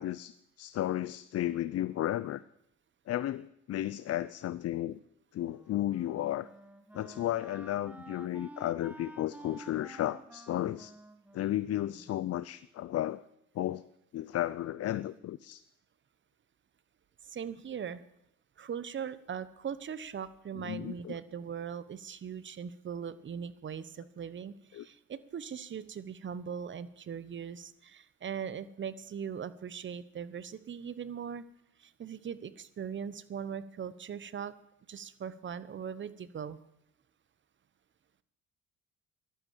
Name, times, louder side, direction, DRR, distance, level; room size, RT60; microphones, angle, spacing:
voice 1, 0.0-2.4 3.1-5.0 5.3-6.5 6.9-10.9 11.3-13.2 13.5-13.9 14.1-15.6 20.5-21.2 24.7-24.9, left 13 dB, 55° left, 17 dB, 0.6 m, -33 dB
Wind instrument woodwind instrument, 5.4-12.6, right 1 dB, 5° right, 1.5 m, -51 dB
voice 2, 17.2-18.0 18.6-31.4 31.8-34.5 34.9-36.6, right 7 dB, 40° right, 15 dB, 1.1 m, -40 dB
14.5 x 12.0 x 7.4 m, 0.80 s
cardioid pair, 105°, 30 cm